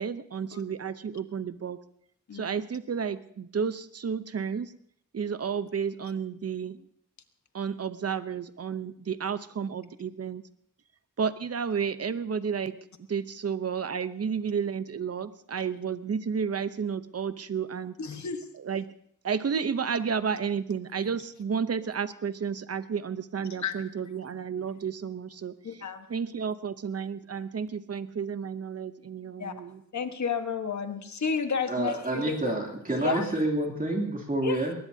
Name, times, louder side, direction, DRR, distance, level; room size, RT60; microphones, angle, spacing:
voice 1, 0.0-1.8 2.3-4.7 5.1-6.9 7.5-10.4 11.2-12.7 13.1-17.9 18.6-18.9 19.2-25.5 26.1-29.8, right 6 dB, 50° right, 13 dB, 0.8 m, -31 dB
voice 2, 18.0-18.5 23.6-23.8 25.6-26.1 29.4-29.5 29.9-32.5 33.0-33.2 34.4-34.6, left 6 dB, 65° left, 7 dB, 1.4 m, -31 dB
voice 3, 31.7-34.7, right 1 dB, 25° right, 0 dB, 3.0 m, -28 dB
21.5 x 19.5 x 2.8 m, 0.69 s
wide cardioid pair, 115°, 31 cm